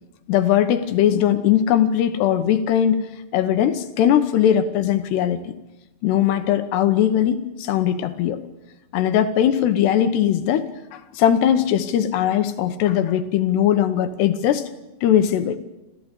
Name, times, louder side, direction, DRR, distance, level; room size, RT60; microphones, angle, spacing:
voice 1, 0.3-3.0 3.3-5.5 6.0-8.4 8.9-14.7 15.0-15.6, left 10 dB, 75° left, 9 dB, 3.0 m, -20 dB
27.0 x 15.5 x 8.3 m, 0.98 s
omnidirectional pair, 5.2 m